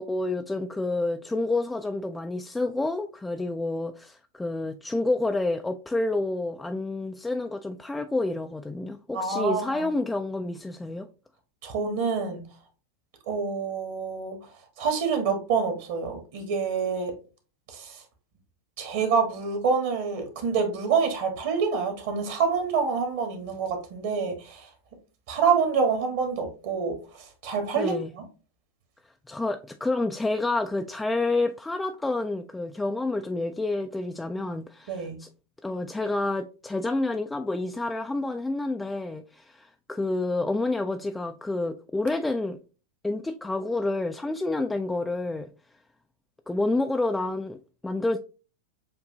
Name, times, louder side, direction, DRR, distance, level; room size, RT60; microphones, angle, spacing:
voice 1, 0.0-11.1 27.8-28.1 29.3-35.3 35.6-42.6 43.0-45.5 46.5-48.2, left 2 dB, 10° left, 0.3 m, -29 dB
voice 2, 9.1-9.9 11.6-12.5 13.3-14.4 14.8-17.1 17.7-18.0 18.8-24.7 25.3-28.2 34.9-35.2, right 5 dB, 50° right, 1.4 m, -27 dB
7.3 x 2.6 x 2.7 m
figure-of-eight pair, 90°, 0 cm